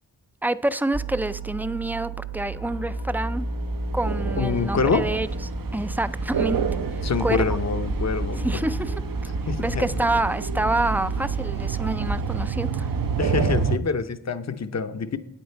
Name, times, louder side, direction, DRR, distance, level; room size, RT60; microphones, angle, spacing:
voice 1, 0.4-3.5 3.9-5.3 5.7-6.6 6.9-7.5 8.4-8.9 9.6-12.9, right 2 dB, 5° right, 0.3 m, -27 dB
sound 1, 0.9-12.1, right 2 dB, 80° right, 1.8 m, -32 dB
sound 2, 3.2-13.8, right 5 dB, 60° right, 0.6 m, -29 dB
voice 2, 4.4-5.1 7.0-8.5 9.5-10.0 13.2-15.2, left 5 dB, 40° left, 0.7 m, -26 dB
10.0 x 8.7 x 4.4 m
wide cardioid pair, 70°, 40 cm